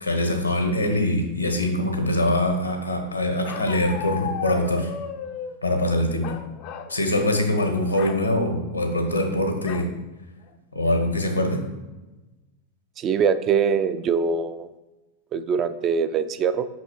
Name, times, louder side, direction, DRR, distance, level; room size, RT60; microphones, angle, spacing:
voice 1, 0.0-4.9 5.6-6.3 6.9-9.9 10.7-11.6, left 1 dB, 85° left, 5 dB, 0.9 m, -23 dB
Bark, 3.5-5.6 6.2-7.0 7.3-7.5 7.9-8.2 9.7-9.9 10.5-10.6 10.9-11.3, left 7 dB, 45° left, 0.4 m, -35 dB
voice 2, 13.0-14.7 15.3-16.7, right 6 dB, 30° right, 12 dB, 0.3 m, -23 dB
5.8 x 5.5 x 3.1 m, 1.1 s
figure-of-eight pair, 90°, 0 cm